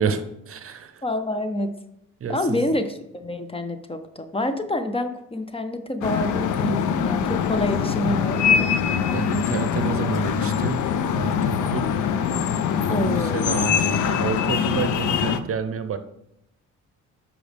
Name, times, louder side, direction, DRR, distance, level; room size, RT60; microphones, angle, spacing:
voice 1, 0.0-1.0 2.2-2.7 9.1-10.9 11.1-11.9 12.8-16.0, right 6 dB, 45° right, 10 dB, 0.7 m, -29 dB
voice 2, 1.0-1.7 2.3-8.7 12.9-13.5, left 1 dB, 20° left, 9 dB, 0.6 m, -27 dB
sound 1, 6.0-15.4, left 7 dB, 80° left, 0.6 m, -23 dB
7.6 x 5.0 x 3.4 m, 0.81 s
cardioid pair, 90°, 30 cm